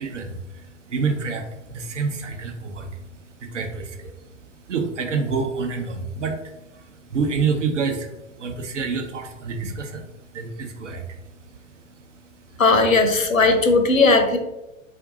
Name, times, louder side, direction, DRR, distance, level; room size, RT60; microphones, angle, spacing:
voice 1, 0.0-12.6, right 5 dB, 65° right, 4 dB, 0.8 m, -29 dB
voice 2, 12.6-14.4, left 3 dB, 85° left, 6 dB, 0.7 m, -17 dB
3.7 x 2.6 x 3.6 m, 1.0 s
figure-of-eight pair, 105°, 39 cm